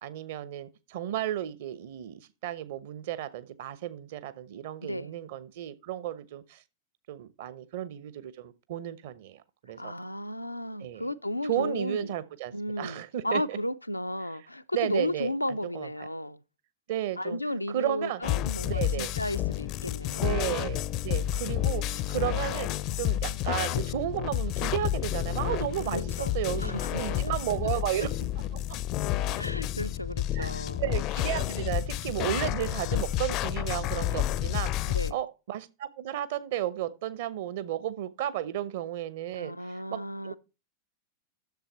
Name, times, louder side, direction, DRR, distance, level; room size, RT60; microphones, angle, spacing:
voice 1, 0.0-6.6 7.1-9.9 10.8-11.1 11.4-13.6 14.7-15.9 16.9-17.4 17.7-18.2 18.6-19.1 20.2-28.1 28.4-28.8 30.3-40.4, right 12 dB, 55° right, 0.9 m, -33 dB
voice 2, 4.8-5.1 9.8-12.1 12.5-16.4 17.2-20.3 25.9-27.4 28.0-28.1 29.4-30.8 34.9-35.2 39.4-40.4, left 1 dB, 85° left, 0.5 m, -34 dB
sound 1, 18.2-35.1, left 13 dB, 40° left, 0.5 m, -30 dB
10.5 x 7.1 x 4.4 m
figure-of-eight pair, 90°, 0 cm